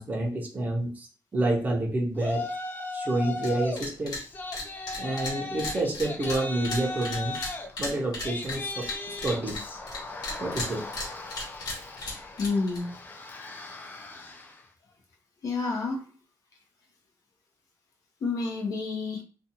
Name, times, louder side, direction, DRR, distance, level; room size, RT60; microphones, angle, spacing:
voice 1, 0.0-2.4 2.9-4.2 5.0-7.4 7.8-9.6 10.4-10.9, right 1 dB, 25° right, 2 dB, 0.6 m, -29 dB
Yell, 2.2-3.8 4.2-14.6, left 2 dB, 25° left, 0.4 m, -37 dB
sound 1, 3.4-3.5 3.8-4.2 4.5-10.0 10.2-12.8, left 2 dB, 70° left, 1.1 m, -35 dB
voice 2, 12.4-12.9 15.4-16.0 18.2-19.2, left 4 dB, 50° left, 0 dB, 0.8 m, -29 dB
2.6 x 2.3 x 2.8 m, 0.37 s
wide cardioid pair, 160°, 7 cm